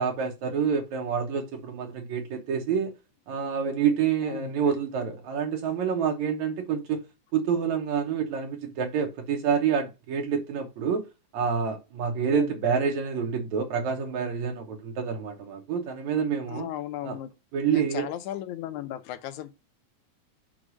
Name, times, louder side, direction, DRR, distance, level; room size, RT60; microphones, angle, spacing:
voice 1, 0.0-2.9 3.3-7.0 7.3-11.1 11.3-16.7 17.0-17.2 17.5-18.1, right 6 dB, 70° right, 2.2 m, -27 dB
voice 2, 4.2-4.7 12.2-12.6 16.5-17.3 17.7-19.5, left 12 dB, 75° left, 2.0 m, -36 dB
6.4 x 3.8 x 6.0 m
omnidirectional pair, 3.5 m